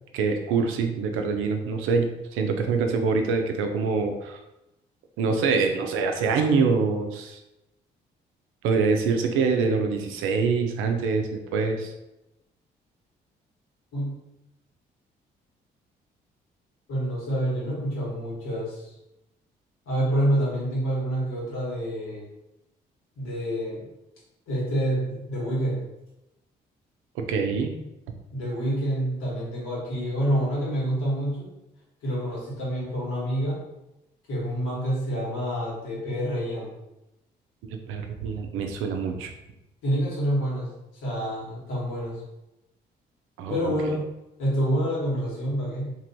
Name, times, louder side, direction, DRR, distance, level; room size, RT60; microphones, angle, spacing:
voice 1, 0.1-4.4 5.2-7.4 8.6-11.9 27.2-27.8 37.9-39.3 43.4-43.9, right 4 dB, 70° right, 5 dB, 0.5 m, -25 dB
voice 2, 16.9-18.9 19.8-22.3 23.2-23.9 24.5-25.9 28.3-31.5 32.0-33.6 34.3-36.7 39.8-40.7 41.0-42.2 43.5-44.1 44.4-45.9, equal, 75° left, -6 dB, 1.3 m, -27 dB
3.1 x 2.5 x 2.6 m, 0.92 s
hypercardioid pair, 50°, 21 cm